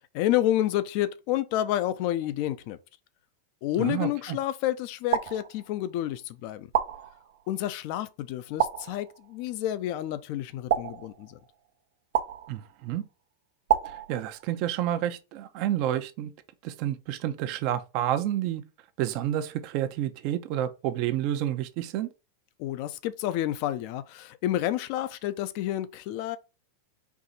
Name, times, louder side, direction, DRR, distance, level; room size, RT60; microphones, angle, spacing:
voice 1, 0.1-2.8 3.6-6.7 7.5-11.4 22.6-26.4, left 13 dB, 55° left, 0.6 m, -29 dB
voice 2, 3.8-4.4 12.5-13.0 14.1-16.3 16.6-18.6 19.0-22.1, right 12 dB, 50° right, 0.8 m, -29 dB
sound 1, 5.1-6.0 6.7-7.6 8.6-9.4 10.7-11.6 12.1-12.9 13.7-14.7, right 10 dB, 75° right, 0.9 m, -30 dB
4.7 x 2.7 x 4.0 m
supercardioid pair, 130°, 0 cm